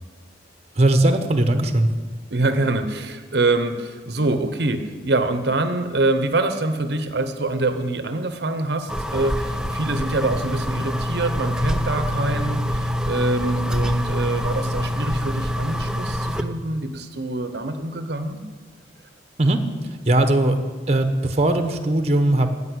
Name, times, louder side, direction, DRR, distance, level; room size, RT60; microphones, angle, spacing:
voice 1, 0.8-1.9 19.4-19.6 20.1-20.6 20.9-22.5, right 1 dB, 35° right, 7 dB, 0.9 m, -19 dB
voice 2, 2.3-18.4, right 2 dB, 65° right, 8 dB, 0.8 m, -25 dB
Computer einschalten ohne Rauschen, 8.9-16.4, equal, 5° right, 0.5 m, -25 dB
16.0 x 5.5 x 9.8 m, 1.4 s
head